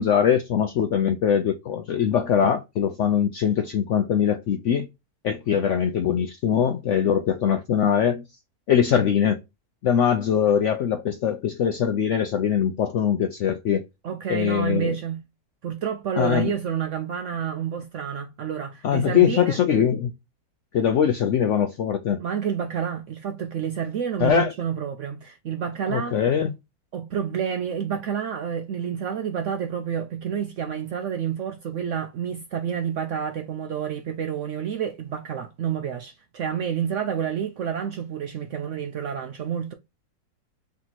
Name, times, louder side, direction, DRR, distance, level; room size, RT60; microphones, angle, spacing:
voice 1, 0.0-4.9 5.2-8.2 8.7-9.4 9.8-13.8 14.3-15.0 16.2-16.5 18.8-20.1 20.7-22.2 24.2-24.5 25.9-26.5, left 8 dB, 75° left, 0.6 m, -22 dB
voice 2, 14.0-15.2 15.6-19.6 22.2-26.2 26.9-39.7, right 8 dB, 70° right, 0.7 m, -29 dB
3.5 x 2.9 x 3.9 m
omnidirectional pair, 1.8 m